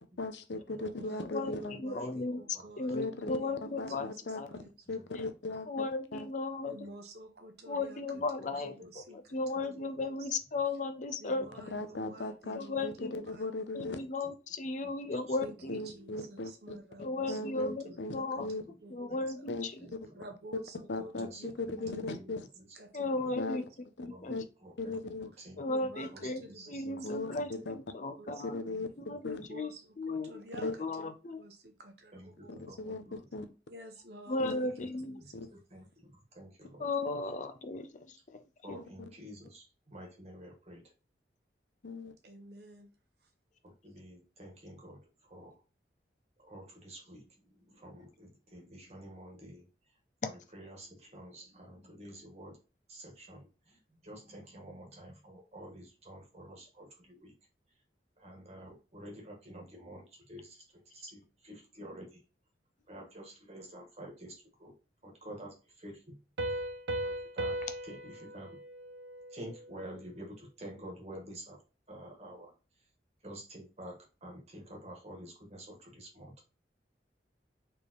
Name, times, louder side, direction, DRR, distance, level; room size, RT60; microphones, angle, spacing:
voice 1, 0.2-1.7 2.9-4.4 4.9-5.9 11.7-14.0 15.7-18.6 19.5-19.6 20.5-20.6 20.9-22.4 23.4-23.6 24.0-24.4 24.8-25.3 27.0-27.8 28.4-28.9 29.2-29.5 30.6-30.7 32.8-33.0 33.3-33.5 34.4-34.9 35.3-35.5 38.7-38.8 41.8-42.1, left 2 dB, 85° left, 0.7 m, -38 dB
voice 2, 0.8-4.7 6.6-10.2 11.2-13.7 15.4-19.5 20.1-21.5 21.9-22.0 22.8-23.6 25.7-28.5 29.3-32.6 33.7-35.4 42.2-42.9, right 1 dB, 65° right, 1.0 m, -51 dB
voice 3, 1.3-2.4 2.8-4.1 4.3-4.5 5.7-6.9 7.7-9.0 9.3-11.5 12.5-13.3 13.7-15.8 17.0-17.8 18.1-18.5 18.9-19.7 22.9-23.6 24.0-24.3 25.6-26.4 26.7-28.6 29.0-29.7 30.0-31.4 34.3-35.2 36.8-38.4, left 3 dB, 45° left, 0.5 m, -35 dB
voice 4, 8.5-8.9 9.5-9.6 9.9-10.0 11.4-11.5 13.8-13.9 14.2-14.3 14.8-15.4 15.7-15.8 16.3-16.4 17.2-18.0 18.3-18.8 19.1-19.2 19.8-20.2 21.1-23.4 24.0-24.3 24.6-27.0 27.3-27.5 28.8-29.2 32.1-33.2 34.3-36.9 38.6-40.9 43.6-45.6 46.4-52.6 52.9-57.3 57.7-57.8 58.2-62.2 62.9-64.7 65.0-66.2 66.5-66.6 66.9-67.6 67.8-68.6 69.3-71.6 71.9-72.9 73.2-76.5, right 1 dB, 35° right, 1.5 m, -50 dB
Piano, 66.4-69.8, right 1 dB, 90° right, 0.5 m, -38 dB
4.3 x 3.4 x 3.1 m
head